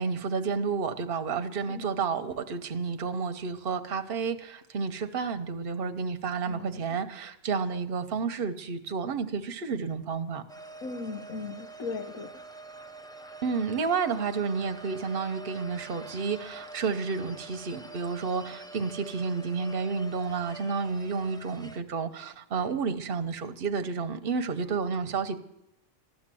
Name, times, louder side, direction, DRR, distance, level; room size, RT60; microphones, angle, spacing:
voice 1, 0.0-10.4 13.4-25.4, right 5 dB, 45° right, 1.1 m, -31 dB
voice 2, 6.5-6.8 10.8-12.3, left 4 dB, 85° left, 1.3 m, -37 dB
sound 1, 10.5-21.8, right 2 dB, 5° left, 0.5 m, -46 dB
14.5 x 12.0 x 7.7 m
omnidirectional pair, 1.4 m